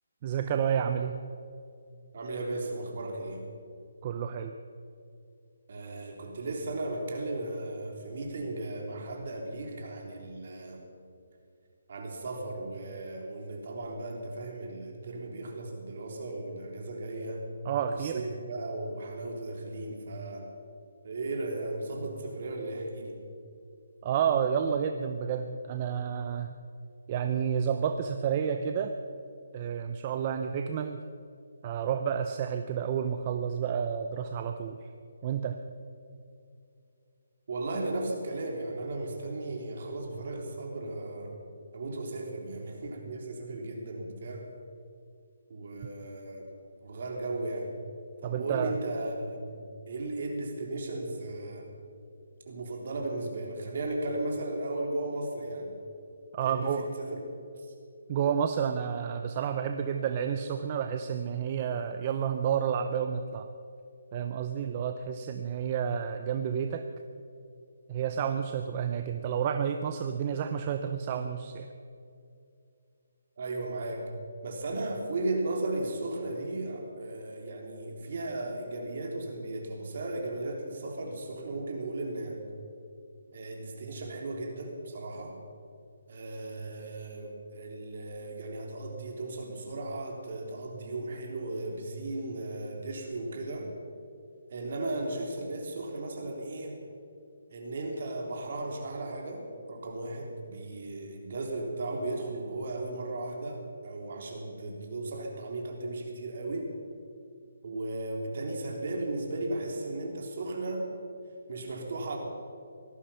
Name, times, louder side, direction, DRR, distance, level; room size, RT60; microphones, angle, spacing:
voice 1, 0.2-1.2 4.0-4.6 17.6-18.2 24.0-26.5 27.1-28.9 29.5-31.0 31.6-34.8 35.2-35.6 48.2-48.7 56.3-56.9 58.1-63.5 64.1-66.9 67.9-71.7, right 8 dB, 30° right, 7 dB, 0.7 m, -30 dB
voice 2, 2.1-3.4 5.7-10.8 11.9-17.5 17.9-20.5 21.0-23.2 37.5-41.3 41.7-44.5 45.5-46.5 46.8-47.7 48.2-49.5 49.9-51.7 52.5-55.8 56.4-57.3 57.6-57.7 73.4-74.1 74.4-82.4 83.3-85.4 86.1-93.7 94.5-96.8 97.5-106.7 107.6-110.9 111.5-112.2, right 2 dB, 50° right, 1 dB, 3.7 m, -36 dB
18.5 x 13.5 x 5.7 m, 2.5 s
hypercardioid pair, 165°, 0 cm